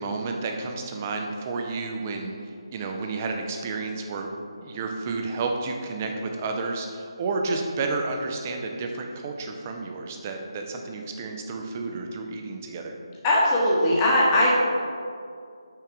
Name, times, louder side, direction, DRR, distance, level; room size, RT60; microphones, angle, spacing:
voice 1, 0.0-4.3 4.6-13.0, right 3 dB, 25° right, 3 dB, 0.5 m, -31 dB
voice 2, 13.2-14.5, left 1 dB, 20° left, -5 dB, 1.0 m, -20 dB
5.9 x 3.5 x 4.6 m, 2.4 s
figure-of-eight pair, 155°, 3 cm